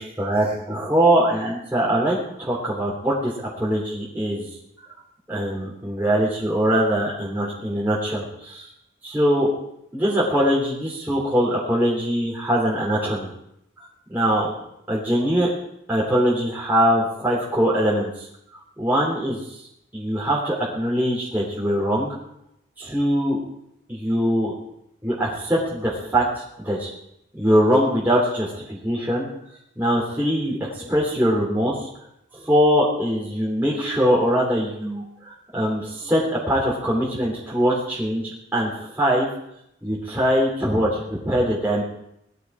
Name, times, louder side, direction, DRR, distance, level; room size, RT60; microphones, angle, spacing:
voice 1, 0.0-4.5 5.3-8.7 9.0-9.5 9.9-13.3 14.1-14.5 14.9-15.5 15.9-18.3 18.8-19.4 19.9-22.1 22.8-23.4 23.9-24.5 25.0-26.2 26.6-26.9 27.3-29.3 29.8-31.9 32.3-39.3 39.8-41.0 41.2-41.8, equal, 10° right, -6 dB, 3.4 m, -22 dB
19.5 x 13.5 x 4.8 m, 0.80 s
head